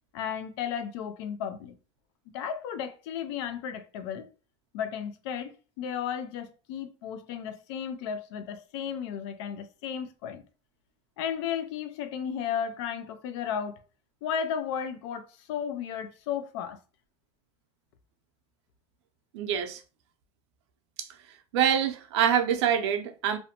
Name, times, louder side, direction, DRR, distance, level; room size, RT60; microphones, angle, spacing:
voice 1, 0.1-1.7 2.3-4.3 4.7-10.4 11.2-13.8 14.2-16.8, left 8 dB, 80° left, 0.5 m, -34 dB
voice 2, 19.3-19.8 21.0-21.1 21.5-23.4, right 9 dB, 90° right, 0.5 m, -25 dB
2.6 x 2.1 x 2.8 m
supercardioid pair, 115°, 14 cm